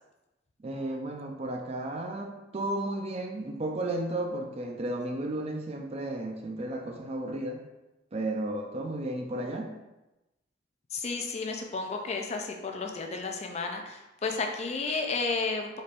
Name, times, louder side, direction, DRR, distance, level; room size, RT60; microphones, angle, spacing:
voice 1, 0.6-7.6 8.1-9.7, right 1 dB, 35° right, 3 dB, 0.4 m, -33 dB
voice 2, 10.9-15.8, left 4 dB, 35° left, 3 dB, 0.4 m, -32 dB
4.2 x 3.4 x 2.5 m, 0.99 s
head